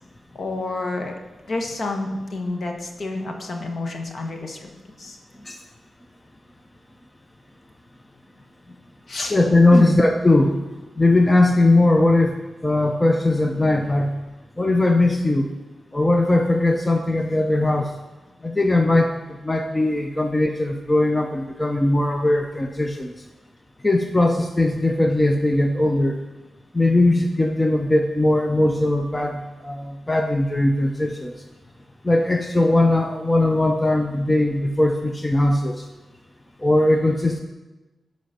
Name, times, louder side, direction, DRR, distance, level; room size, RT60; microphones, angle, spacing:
voice 1, 0.3-1.1 1.5-4.7 5.0-5.2 9.1-9.4 9.7-9.9, left 2 dB, 55° left, 3 dB, 1.4 m, -28 dB
voice 2, 9.3-10.6 11.0-12.3 12.6-14.1 14.6-15.5 15.9-17.9 18.4-23.1 23.8-26.2 26.7-31.3 32.0-35.8 36.6-37.4, left 2 dB, 20° left, 4 dB, 0.7 m, -19 dB
12.5 x 5.2 x 5.8 m, 1.1 s
wide cardioid pair, 90°, 0 cm